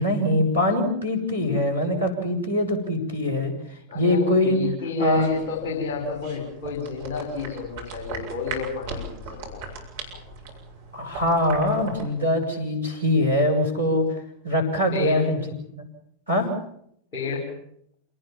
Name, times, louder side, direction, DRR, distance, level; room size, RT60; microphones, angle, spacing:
voice 1, 0.0-4.6 5.0-5.3 10.9-15.9 16.3-16.5, left 1 dB, 85° right, 2 dB, 7.5 m, -23 dB
voice 2, 3.9-9.6 10.1-10.2 14.9-15.3 17.1-17.6, left 5 dB, 50° left, 0 dB, 6.1 m, -30 dB
sound 1, 5.0-12.1, right 3 dB, 55° right, 7.4 m, -38 dB
28.0 x 19.0 x 7.5 m, 0.72 s
figure-of-eight pair, 90°, 0 cm